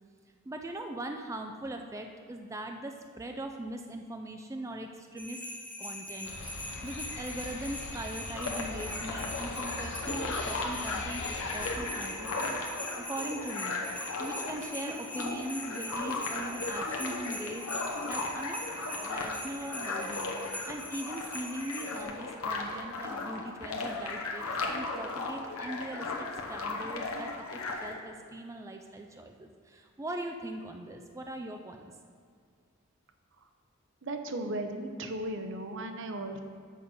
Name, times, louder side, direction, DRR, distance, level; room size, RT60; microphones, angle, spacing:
voice 1, 0.5-5.4 5.8-6.3 6.8-12.6 13.0-17.7 18.0-18.6 19.0-20.3 20.7-31.9, right 1 dB, 15° right, 4 dB, 0.4 m, -40 dB
sound 1, 5.2-22.0, left 1 dB, 5° left, 0.7 m, -42 dB
sound 2, 6.2-11.8, left 3 dB, 60° left, 0.7 m, -41 dB
sound 3, 8.3-28.0, left 3 dB, 85° left, 1.0 m, -36 dB
voice 2, 34.0-36.4, right 1 dB, 60° right, 6 dB, 0.7 m, -36 dB
6.5 x 5.4 x 7.0 m, 2.1 s
head